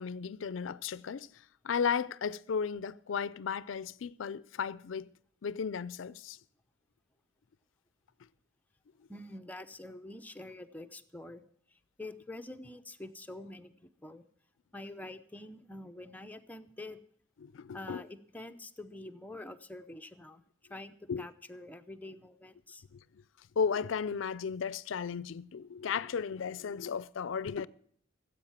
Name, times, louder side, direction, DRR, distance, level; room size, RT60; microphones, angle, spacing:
voice 1, 0.0-1.3 1.6-5.1 5.4-6.4 17.4-18.0 21.1-21.3 22.9-23.0 23.6-27.7, left 6 dB, 85° left, 0.4 m, -34 dB
voice 2, 9.1-11.4 11.7-14.2 14.7-17.0 17.7-20.4 20.7-22.8, left 1 dB, 10° left, 0.7 m, -46 dB
15.0 x 8.1 x 7.3 m
head